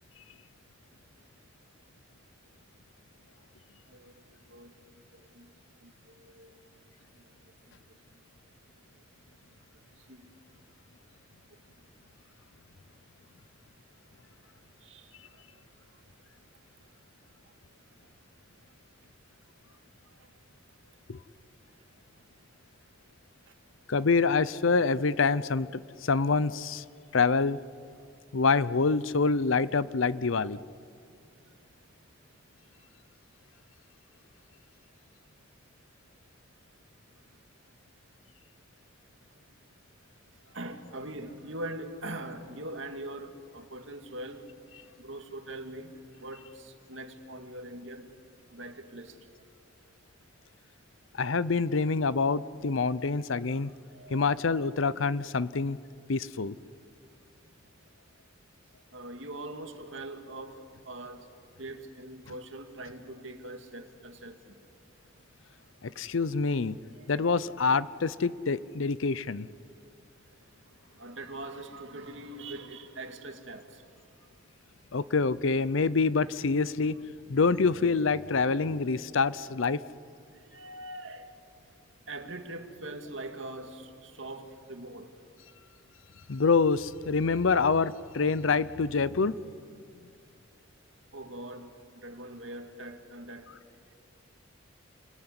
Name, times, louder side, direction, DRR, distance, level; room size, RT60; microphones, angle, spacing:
voice 1, 3.9-4.2 4.5-4.7 5.1-5.5 6.2-6.5 10.1-10.3 14.8-15.1 40.5-44.5 45.0-45.9 46.2-48.1 48.5-49.1 53.9-54.8 58.9-61.2 61.6-64.5 67.0-67.3 71.0-73.7 80.4-81.3 82.1-85.1 91.1-91.7 91.9-93.5, right 1 dB, 65° right, 2.2 m, -42 dB
voice 2, 23.9-26.8 27.1-27.6 28.3-30.6 51.2-53.7 54.1-55.8 56.1-56.6 65.8-66.8 67.1-69.5 74.9-76.9 77.3-79.8 86.3-89.3, left 4 dB, 70° left, 0.7 m, -26 dB
27.5 x 21.0 x 9.8 m
head